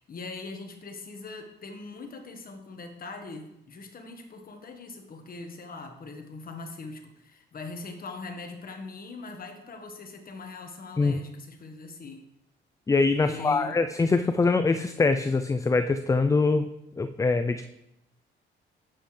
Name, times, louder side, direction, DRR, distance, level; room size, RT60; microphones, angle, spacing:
voice 1, 0.0-12.2 13.2-13.8, left 3 dB, 45° left, 5 dB, 1.4 m, -41 dB
voice 2, 12.9-16.7 17.0-17.7, left 3 dB, 15° left, 10 dB, 0.4 m, -23 dB
10.0 x 7.8 x 3.2 m, 0.86 s
cardioid pair, 90°, 20 cm